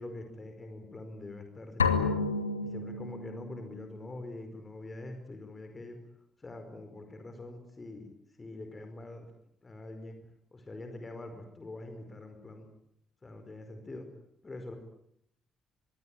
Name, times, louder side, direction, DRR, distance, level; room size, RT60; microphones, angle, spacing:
voice 1, 0.0-2.2 2.6-6.0 6.4-8.1 8.4-9.3 9.6-10.2 10.5-12.7 13.2-14.1 14.4-14.7, left 2 dB, 25° left, 6 dB, 4.9 m, -44 dB
sound 1, 1.8-3.6, left 4 dB, 80° left, 1.5 m, -30 dB
25.0 x 23.0 x 9.2 m, 0.74 s
figure-of-eight pair, 45°, 0 cm